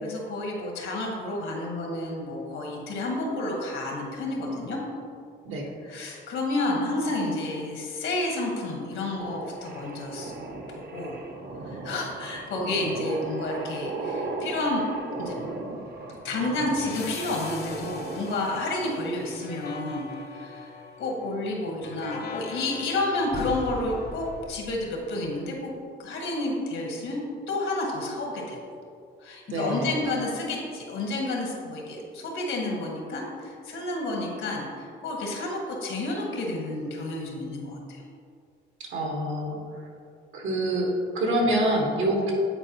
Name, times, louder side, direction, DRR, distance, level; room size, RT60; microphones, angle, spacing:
voice 1, 0.0-4.8 5.8-10.3 10.7-11.2 11.6-14.8 15.2-15.4 16.2-25.7 26.0-28.6 29.2-38.0, left 2 dB, 80° left, -1 dB, 1.5 m, -30 dB
sound 1, 9.2-19.1, right 3 dB, 50° right, 0.8 m, -37 dB
sound 2, 16.8-25.3, left 4 dB, 55° left, 0.8 m, -40 dB
voice 2, 29.5-29.9 38.9-39.6 40.3-40.9 41.1-42.3, right 1 dB, 80° right, -1 dB, 1.5 m, -26 dB
8.8 x 4.5 x 2.9 m, 2.3 s
cardioid pair, 90°, 20 cm